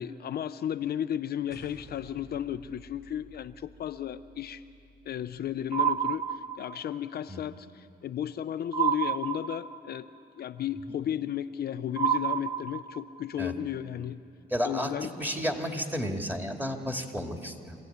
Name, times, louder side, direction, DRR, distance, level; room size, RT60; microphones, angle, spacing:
voice 1, 0.0-4.6 5.1-10.1 10.4-14.2 14.6-15.1, left 10 dB, 60° left, 10 dB, 0.6 m, -34 dB
sound 1, 1.5-6.1, right 1 dB, 70° right, 6.2 m, -54 dB
sound 2, 5.7-7.0 8.7-10.0 12.0-13.2, right 8 dB, 30° right, 0.7 m, -29 dB
voice 2, 14.5-17.7, equal, 10° right, 3 dB, 2.4 m, -32 dB
25.0 x 15.5 x 9.4 m, 2.6 s
cardioid pair, 90°, 18 cm